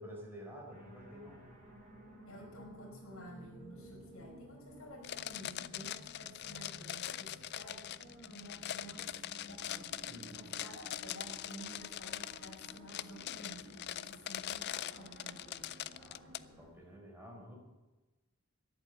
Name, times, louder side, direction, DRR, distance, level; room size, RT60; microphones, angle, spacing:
voice 1, 0.0-1.4 3.8-4.0 10.1-10.5 15.9-17.6, equal, 10° right, -1 dB, 4.4 m, -51 dB
sound 1, 0.7-16.7, equal, 40° right, 4.7 m, -55 dB
voice 2, 2.3-9.9 10.3-15.7, equal, 75° left, -1 dB, 5.5 m, -52 dB
sound 2, 5.0-16.4, left 12 dB, 50° left, 0.4 m, -42 dB
13.5 x 11.0 x 8.0 m, 1.1 s
head